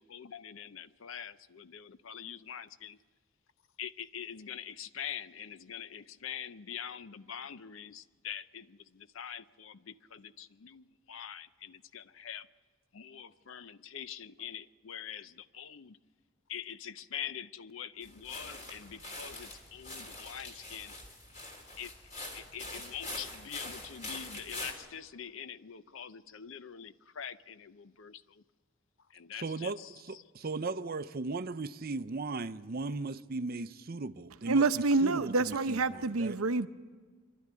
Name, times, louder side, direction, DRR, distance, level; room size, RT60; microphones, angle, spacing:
voice 1, 0.0-3.0 3.8-12.5 12.9-16.0 16.5-20.9 21.8-21.9 22.3-28.2 29.1-29.7, left 8 dB, 65° left, 0.6 m, -44 dB
sound 1, 18.0-24.7, left 2 dB, 35° left, 3.2 m, -44 dB
voice 2, 29.3-36.4, right 3 dB, 45° right, 0.6 m, -37 dB
voice 3, 34.5-36.7, right 3 dB, 85° right, 0.8 m, -27 dB
25.0 x 12.0 x 9.5 m
head